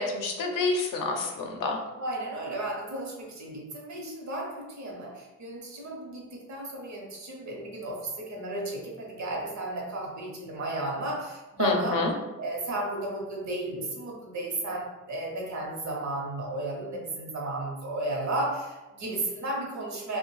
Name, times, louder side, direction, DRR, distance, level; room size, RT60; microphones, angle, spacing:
voice 1, 0.0-1.8 11.6-12.1, left 3 dB, 80° left, 2 dB, 0.6 m, -28 dB
voice 2, 2.0-12.0 12.4-20.2, right 2 dB, 60° right, -1 dB, 0.7 m, -34 dB
2.5 x 2.1 x 3.0 m, 1.1 s
wide cardioid pair, 130°, 32 cm